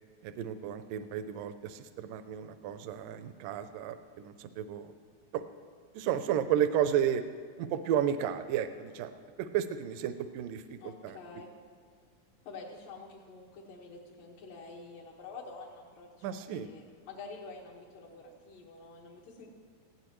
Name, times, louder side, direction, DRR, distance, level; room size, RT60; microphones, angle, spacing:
voice 1, 0.2-4.9 5.3-5.4 5.9-7.2 7.6-9.1 9.4-11.2 16.2-16.7, right 9 dB, 80° right, 9 dB, 2.2 m, -32 dB
voice 2, 10.8-11.5 12.5-19.5, left 3 dB, 75° left, -6 dB, 3.2 m, -48 dB
20.0 x 15.5 x 3.1 m, 2.1 s
omnidirectional pair, 3.9 m